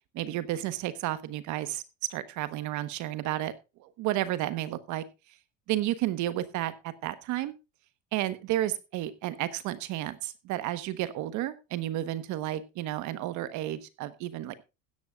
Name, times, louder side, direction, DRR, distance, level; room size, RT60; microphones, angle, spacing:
voice 1, 0.1-1.8 2.1-3.5 3.8-5.0 5.7-7.5 8.1-14.6, right 14 dB, 55° right, 14 dB, 1.2 m, -32 dB
16.0 x 11.0 x 2.4 m, 0.26 s
supercardioid pair, 110°, 34 cm